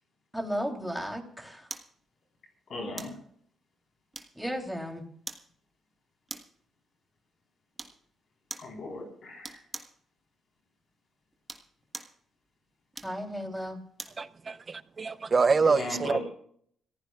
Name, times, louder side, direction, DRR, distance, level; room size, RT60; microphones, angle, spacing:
voice 1, 0.3-1.7 4.3-5.0 13.0-13.8, equal, ahead, 3.2 m, -34 dB
sound 1, 1.7-1.9 3.0-3.2 4.1-4.6 5.3-5.5 6.3-6.6 7.8-8.0 8.5-8.7 9.4-10.0 11.3-12.2 12.9-14.2 14.7-14.8, right 2 dB, 20° right, 1.5 m, -42 dB
voice 2, 2.7-3.1 8.6-9.6 15.6-16.2, left 2 dB, 55° left, 4.1 m, -37 dB
voice 3, 14.2-16.2, right 4 dB, 35° right, 0.7 m, -26 dB
25.5 x 15.0 x 2.4 m
cardioid pair, 90°, 0 cm